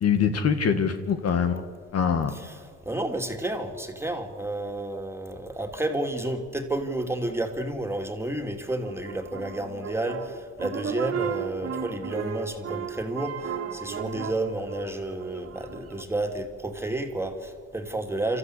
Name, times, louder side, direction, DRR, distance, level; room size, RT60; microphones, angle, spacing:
voice 1, 0.0-1.6 1.9-2.3, left 7 dB, 50° left, 8 dB, 1.8 m, -23 dB
voice 2, 2.3-18.4, right 1 dB, 10° right, 4 dB, 3.0 m, -31 dB
sound 1, 8.8-16.0, right 7 dB, 50° right, 2.2 m, -35 dB
27.5 x 13.5 x 8.2 m, 2.1 s
supercardioid pair, 75°, 31 cm